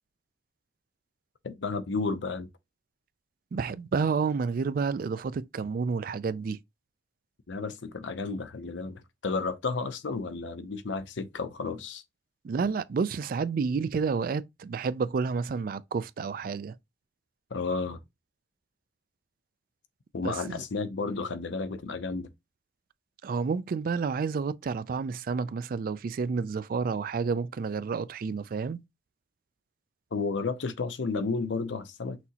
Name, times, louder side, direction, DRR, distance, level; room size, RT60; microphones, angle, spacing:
voice 1, 1.4-2.5 7.5-12.0 17.5-18.0 20.1-22.3 30.1-32.2, left 4 dB, 80° left, 0.6 m, -32 dB
voice 2, 3.5-6.6 12.4-16.8 20.2-20.6 23.2-28.8, right 5 dB, 50° right, 0.3 m, -30 dB
6.0 x 2.8 x 2.8 m
head